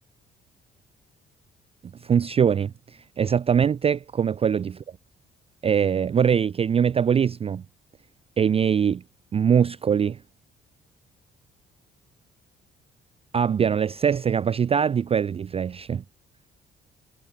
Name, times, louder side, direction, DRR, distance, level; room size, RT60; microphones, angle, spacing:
voice 1, 2.0-2.7 3.2-4.8 5.6-7.6 8.4-9.0 9.3-10.2 13.3-16.0, right 7 dB, 30° right, 0.3 m, -22 dB
cardioid pair, 90°, 20 cm